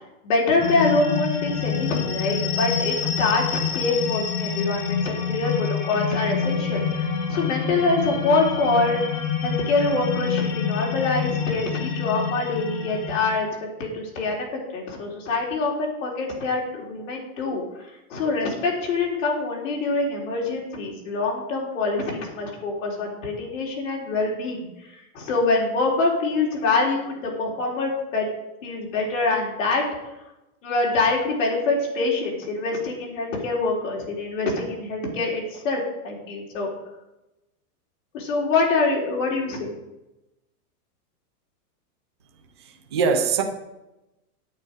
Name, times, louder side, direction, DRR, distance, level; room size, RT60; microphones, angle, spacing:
voice 1, 0.2-5.5 5.8-6.8 7.3-9.0 9.4-13.5 13.8-14.5 14.7-17.6 18.1-24.7 25.1-28.3 28.6-29.8 30.6-36.7 38.1-39.7, left 3 dB, 55° left, -2 dB, 3.7 m, -25 dB
sound 1, 0.6-13.4, left 6 dB, 25° left, 1.0 m, -27 dB
voice 2, 42.6-43.4, right 5 dB, 20° right, 3 dB, 0.4 m, -23 dB
9.2 x 8.9 x 5.1 m, 0.96 s
supercardioid pair, 170°, 45 cm